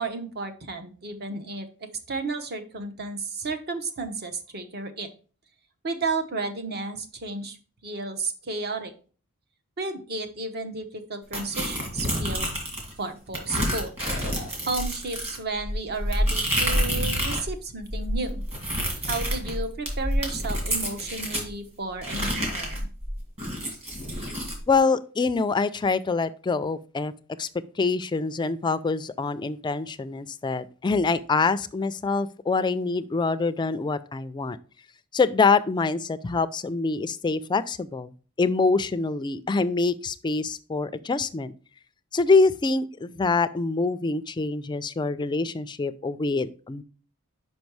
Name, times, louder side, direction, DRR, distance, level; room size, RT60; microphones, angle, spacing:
voice 1, 0.0-5.1 5.8-7.6 7.8-8.9 9.8-12.5 13.0-14.0 14.7-18.4 19.1-22.9, right 3 dB, 45° right, 7 dB, 0.9 m, -33 dB
sound 1, 11.3-12.9 13.3-17.5 17.8-21.5 22.0-24.6, equal, 30° right, 2.3 m, -28 dB
voice 2, 24.7-27.1 27.4-27.5 27.8-34.6 35.1-38.1 38.4-41.5 42.1-46.8, left 4 dB, 20° left, 13 dB, 0.3 m, -25 dB
5.3 x 5.3 x 4.6 m, 0.38 s
head